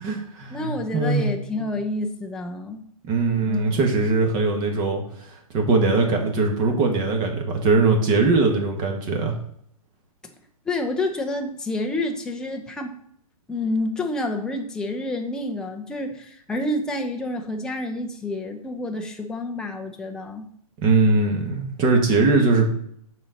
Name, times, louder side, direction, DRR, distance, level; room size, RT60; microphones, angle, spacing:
voice 1, 0.0-1.3 3.0-5.0 5.5-9.3 20.8-22.7, right 3 dB, 25° right, 3 dB, 1.5 m, -21 dB
voice 2, 0.5-2.8 3.5-4.1 10.7-13.0 13.5-20.5, left 2 dB, 5° left, 3 dB, 0.6 m, -29 dB
6.9 x 4.2 x 6.4 m, 0.69 s
hypercardioid pair, 155°, 19 cm